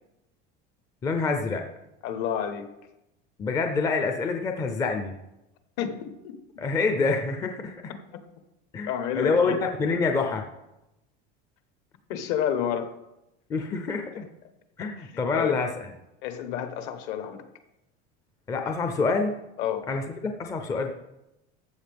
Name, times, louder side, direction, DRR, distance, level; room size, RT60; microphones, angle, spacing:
voice 1, 1.0-1.6 3.4-5.2 6.6-7.9 8.7-8.9 9.1-10.5 13.5-14.3 14.8-15.7 18.5-19.3 19.9-20.9, left 4 dB, 15° left, 5 dB, 0.5 m, -26 dB
voice 2, 2.0-2.7 5.8-6.2 8.9-9.6 12.1-12.9 15.0-15.5 16.2-17.4 19.6-19.9, left 9 dB, 55° left, 8 dB, 1.1 m, -29 dB
14.0 x 7.7 x 3.5 m, 0.91 s
cardioid pair, 175°, 21 cm